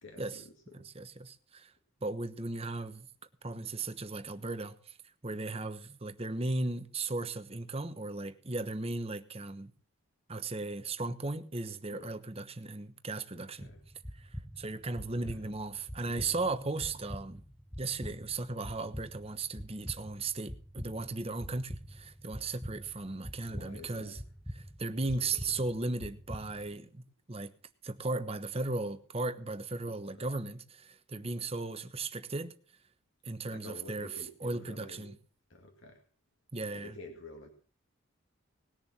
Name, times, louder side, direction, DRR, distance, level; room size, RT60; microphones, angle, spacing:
voice 1, 0.0-0.9 11.9-12.1 13.3-13.8 15.0-15.4 23.4-24.2 25.0-25.2 30.1-30.3 33.5-35.1 35.5-36.0 36.7-37.5, left 2 dB, 65° left, 2.0 m, -50 dB
voice 2, 0.8-1.7 2.0-3.1 3.4-5.0 5.2-9.7 10.3-13.7 14.1-17.4 17.8-24.2 24.5-27.0 27.3-27.5 27.8-32.5 33.2-34.1 34.4-35.1 36.5-37.0, right 3 dB, 30° right, 1.1 m, -36 dB
sound 1, 13.6-26.7, equal, 5° left, 0.7 m, -45 dB
19.5 x 7.0 x 7.3 m
head